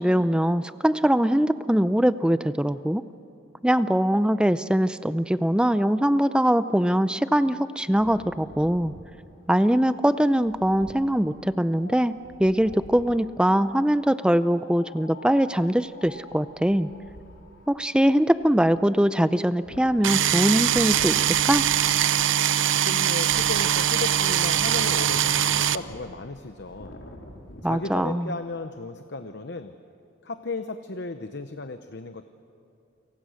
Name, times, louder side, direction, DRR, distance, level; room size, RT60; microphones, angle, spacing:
voice 1, 0.0-3.0 3.6-8.9 9.5-16.9 17.7-21.6 27.6-28.3, equal, 5° right, 13 dB, 0.5 m, -22 dB
Wind, 7.9-13.3 14.4-27.6, left 1 dB, 85° left, 3.4 m, -46 dB
sound 1, 20.0-25.7, right 10 dB, 75° right, 0.6 m, -22 dB
voice 2, 22.7-27.0 27.6-29.8 30.2-32.2, left 3 dB, 60° left, 8 dB, 0.9 m, -35 dB
29.5 x 24.0 x 6.4 m, 2.7 s
head